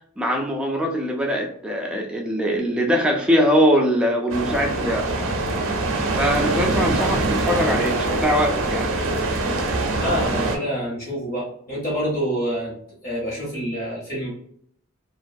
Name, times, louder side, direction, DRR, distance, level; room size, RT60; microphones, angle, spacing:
voice 1, 0.2-5.1 6.1-8.9, equal, 5° right, 0 dB, 0.4 m, -22 dB
sound 1, 4.3-10.6, right 2 dB, 65° right, 0.5 m, -23 dB
voice 2, 10.0-12.7 13.0-14.3, equal, 40° left, -6 dB, 1.0 m, -27 dB
2.5 x 2.2 x 2.6 m, 0.64 s
head